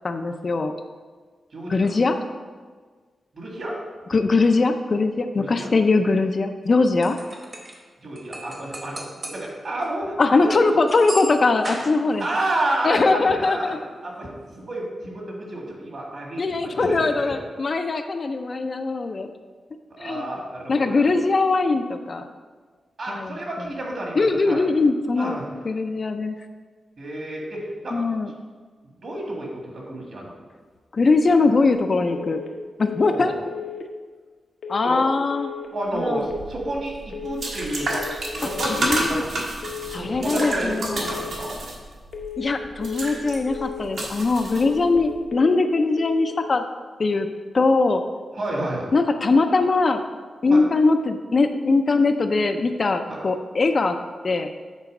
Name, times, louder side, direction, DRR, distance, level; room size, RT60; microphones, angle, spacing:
voice 1, 0.0-0.7 1.7-2.2 4.1-7.2 10.2-12.3 12.8-13.8 16.4-19.3 20.0-20.3 20.7-22.3 23.1-23.7 24.2-26.3 27.9-28.3 30.9-32.4 32.8-33.4 34.7-35.5 35.9-36.2 38.7-39.2 39.9-41.1 42.4-46.6 47.0-47.3 47.5-48.0 48.9-50.0 50.4-54.0 54.2-54.5, left 3 dB, 40° left, 7 dB, 0.4 m, -21 dB
voice 2, 1.5-1.9 3.3-3.7 5.4-5.7 8.0-10.8 12.2-13.8 14.0-14.3 14.6-17.3 19.9-21.1 23.0-24.6 25.2-25.4 27.0-28.0 29.0-30.3 33.0-33.4 34.8-35.0 35.7-36.9 37.2-38.0 38.3-39.3 40.0-41.6 48.3-48.9 50.5-50.6 53.1-53.2, right 1 dB, 55° right, -2 dB, 1.8 m, -30 dB
sound 1, 6.7-7.8 8.2-9.5 9.8-9.9 10.9-12.4, right 1 dB, 25° right, 0.9 m, -36 dB
sound 2, 32.1-32.5 32.8-33.2 33.5-33.9 34.6-35.0 35.3-35.7 36.0-36.4 37.1-37.5 37.8-38.2 38.5-38.9 39.6-40.0 40.3-40.7 41.0-41.4 42.1-42.5 42.8-43.2 43.5-43.9 44.6-45.0 45.3-45.7 46.0-46.4, left 8 dB, 75° left, 0.7 m, -35 dB
sound 3, 36.2-45.1, right 1 dB, 70° right, 1.4 m, -30 dB
8.2 x 3.9 x 5.2 m, 1.5 s
wide cardioid pair, 150°, 0 cm